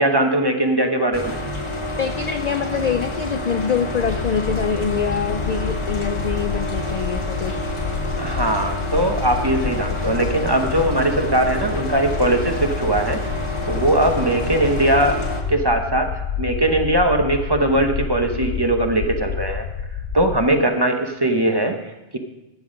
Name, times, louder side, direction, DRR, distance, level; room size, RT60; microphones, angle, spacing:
voice 1, 0.0-1.3 8.2-13.2 13.7-15.2 15.5-16.1 16.4-19.7 20.1-22.2, right 1 dB, 25° right, 4 dB, 0.8 m, -20 dB
sound 1, 1.1-15.4, equal, 30° left, 1.2 m, -28 dB
voice 2, 2.0-7.6, left 6 dB, 55° left, 8 dB, 0.4 m, -25 dB
sound 2, 3.9-20.5, left 7 dB, 75° left, 0.9 m, -29 dB
11.5 x 7.8 x 5.1 m, 1.0 s
omnidirectional pair, 1.1 m